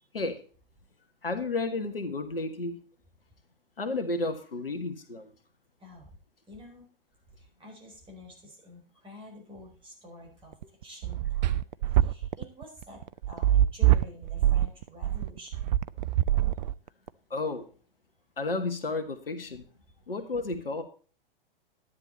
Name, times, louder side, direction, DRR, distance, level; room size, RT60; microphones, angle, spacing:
voice 1, 1.2-2.8 3.8-5.2 17.3-17.7 18.4-19.6 20.1-20.8, left 3 dB, 75° left, 1.8 m, -32 dB
voice 2, 6.5-6.8 7.6-10.5 10.8-11.5 12.0-13.0 13.3-15.5, left 1 dB, 15° right, 5.2 m, -48 dB
sound 1, 10.5-17.1, right 13 dB, 45° right, 0.6 m, -24 dB
12.0 x 10.5 x 4.1 m
figure-of-eight pair, 105°, 29 cm